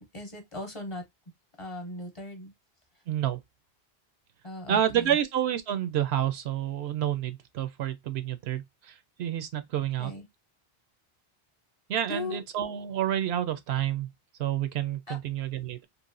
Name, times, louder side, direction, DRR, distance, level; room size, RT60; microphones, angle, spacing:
voice 1, 0.1-1.0 1.6-2.5 4.4-5.2 10.0-10.3 12.1-12.4 15.1-15.2, left 1 dB, 35° left, 0.7 m, -38 dB
voice 2, 3.1-3.4 4.7-8.6 9.2-10.1 11.9-14.1 14.4-15.8, right 10 dB, 80° right, 0.8 m, -29 dB
3.1 x 2.5 x 2.4 m
omnidirectional pair, 1.1 m